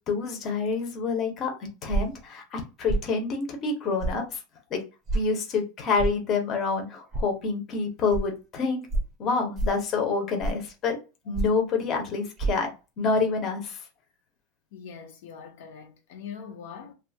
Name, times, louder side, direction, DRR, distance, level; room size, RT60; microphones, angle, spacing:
voice 1, 0.1-4.4 4.7-4.8 5.1-8.8 9.2-11.0 11.3-12.7 13.0-13.8, left 4 dB, 30° left, 0.7 m, -27 dB
sound 1, 1.9-2.2 2.9-3.1 4.0-4.2 5.1-5.2 6.0-6.2 7.1-7.3 8.1-8.2 8.9-9.1 9.6-9.8 10.4-10.7 11.3-11.6 12.4-12.5, right 2 dB, 25° right, 0.6 m, -27 dB
voice 2, 14.7-16.9, left 7 dB, 70° left, 0.6 m, -42 dB
2.7 x 2.3 x 2.7 m
supercardioid pair, 165°, 0 cm